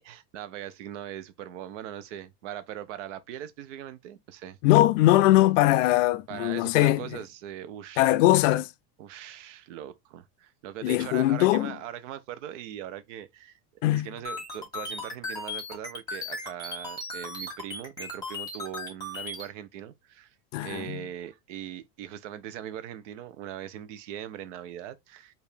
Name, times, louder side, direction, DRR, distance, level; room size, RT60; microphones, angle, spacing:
voice 1, 0.0-4.6 6.3-8.1 9.0-13.6 13.9-20.4 20.6-25.3, right 11 dB, 50° right, 0.8 m, -40 dB
voice 2, 4.6-7.2 8.0-8.7 10.8-11.7 13.8-14.1 20.5-21.0, left 16 dB, 55° left, 0.5 m, -21 dB
sound 1, 14.2-19.5, left 2 dB, 10° left, 1.7 m, -36 dB
4.6 x 2.7 x 3.4 m
supercardioid pair, 170°, 45 cm